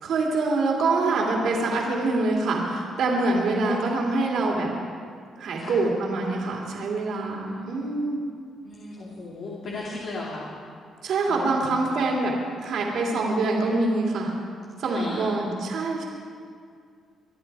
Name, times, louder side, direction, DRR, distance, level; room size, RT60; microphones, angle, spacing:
voice 1, 0.0-4.7 5.4-8.2 11.0-12.3 12.6-14.3 14.8-16.0, right 3 dB, 70° right, -2 dB, 2.8 m, -25 dB
voice 2, 3.5-3.9 5.6-5.8 7.5-8.1 8.6-10.5 11.3-11.6 14.8-15.4, left 2 dB, 60° left, -4 dB, 2.7 m, -36 dB
24.0 x 11.0 x 4.9 m, 2.2 s
cardioid pair, 90°, 0 cm